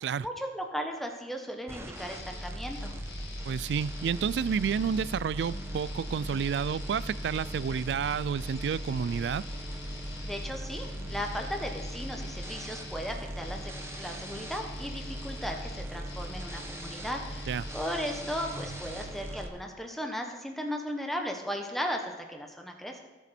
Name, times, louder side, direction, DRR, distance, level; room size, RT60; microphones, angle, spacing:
voice 1, 0.2-2.9 10.2-23.0, equal, ahead, 3 dB, 1.2 m, -36 dB
sound 1, 1.7-19.5, right 1 dB, 15° right, 1.0 m, -39 dB
sound 2, 1.9-19.1, left 3 dB, 75° left, 1.7 m, -47 dB
voice 2, 3.5-9.4 17.5-17.7, right 7 dB, 70° right, 20 dB, 0.3 m, -30 dB
17.5 x 7.0 x 4.3 m, 1.3 s
head